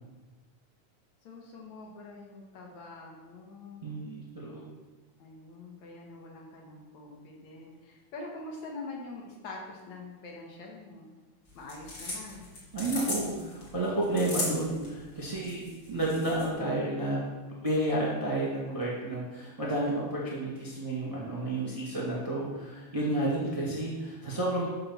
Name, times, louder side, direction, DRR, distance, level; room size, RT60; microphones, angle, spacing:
voice 1, 1.2-3.9 5.2-11.1 11.5-12.4 21.5-22.0, left 3 dB, 70° left, -1 dB, 2.8 m, -45 dB
voice 2, 3.8-4.7 12.7-17.2 17.6-24.7, right 1 dB, 15° right, -6 dB, 1.6 m, -31 dB
sound 1, 11.5-16.5, left 2 dB, 35° left, 2.4 m, -38 dB
12.5 x 4.3 x 5.8 m, 1.2 s
omnidirectional pair, 3.5 m